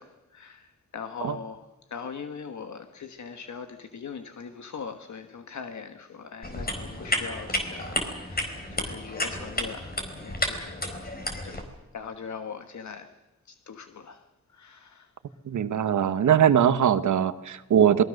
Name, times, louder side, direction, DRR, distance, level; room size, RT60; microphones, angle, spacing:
voice 1, 0.0-11.0 11.4-13.2 13.4-14.2 14.5-15.1, left 6 dB, 70° left, 1.5 m, -41 dB
sound 1, 6.4-11.6, left 1 dB, 30° left, 4.4 m, -32 dB
voice 2, 15.5-18.0, right 9 dB, 80° right, 1.1 m, -21 dB
27.0 x 20.5 x 6.5 m
cardioid pair, 80°, 30 cm